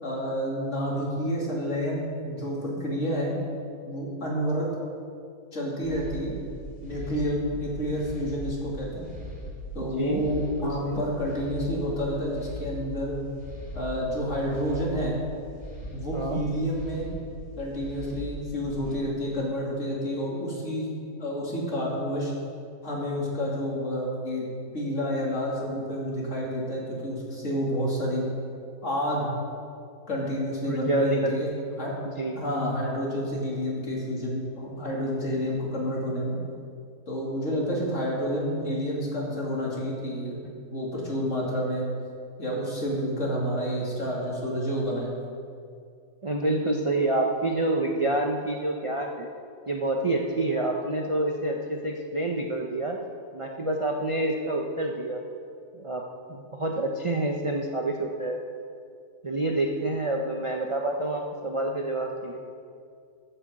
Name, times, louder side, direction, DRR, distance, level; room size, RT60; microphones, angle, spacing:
voice 1, 0.0-3.4 3.8-4.7 5.5-6.4 6.8-9.0 9.7-13.2 13.7-15.1 15.9-17.1 17.6-20.9 21.2-22.3 22.8-24.5 24.7-28.2 28.8-29.3 30.1-31.5 31.8-32.0 32.3-36.4 37.1-41.8 42.4-45.1, equal, 50° left, -4 dB, 2.9 m, -29 dB
sound 1, 5.8-19.0, equal, 5° right, 2.5 m, -40 dB
voice 2, 9.8-10.2 10.6-11.0 16.1-16.4 30.6-31.6 32.2-32.4 46.2-49.3 49.7-53.0 53.3-55.2 55.7-56.0 56.3-58.4 59.2-62.4, right 2 dB, 30° right, 1 dB, 0.6 m, -28 dB
13.0 x 6.8 x 7.5 m, 2.4 s
omnidirectional pair, 1.6 m